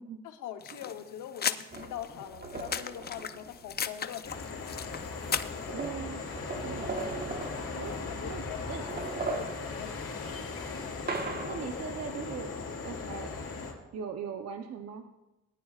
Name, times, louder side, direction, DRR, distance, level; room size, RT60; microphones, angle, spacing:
voice 1, 0.2-4.3 7.9-10.4, left 10 dB, 90° left, 7 dB, 0.9 m, -43 dB
sound 1, 0.6-5.7, left 7 dB, 35° left, 0.5 m, -37 dB
sound 2, 1.7-3.9 4.9-5.0 5.2-8.4 8.7-11.9, right 3 dB, 30° right, 1.3 m, -39 dB
sound 3, 4.2-13.7, left 4 dB, 50° left, 4.1 m, -38 dB
voice 2, 5.7-6.2 6.6-7.2 7.8-7.9 8.2-8.8 11.4-12.5 12.8-13.3 13.9-15.0, right 7 dB, 55° right, 6 dB, 0.8 m, -40 dB
19.0 x 10.0 x 2.4 m, 1.0 s
cardioid pair, 90°, 30 cm